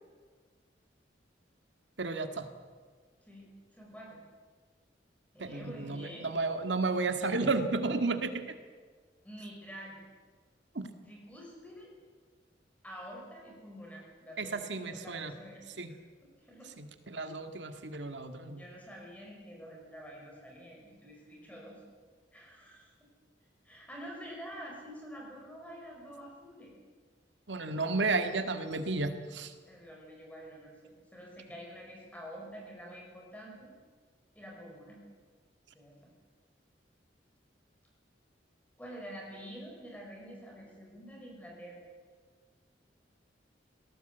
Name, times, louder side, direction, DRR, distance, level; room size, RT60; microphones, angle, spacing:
voice 1, 2.0-2.5 5.4-8.4 10.8-10.9 14.4-15.3 15.8-15.9 16.8-18.6 27.5-29.5, right 3 dB, 85° right, 7 dB, 1.9 m, -32 dB
voice 2, 3.2-4.2 5.3-6.3 9.2-10.0 11.0-11.9 12.8-16.7 18.4-21.8 22.3-22.9 23.6-26.7 29.7-33.7 34.4-35.0 35.7-35.9 38.8-41.8, equal, 10° left, -2 dB, 5.4 m, -48 dB
22.0 x 18.0 x 8.0 m, 1.5 s
head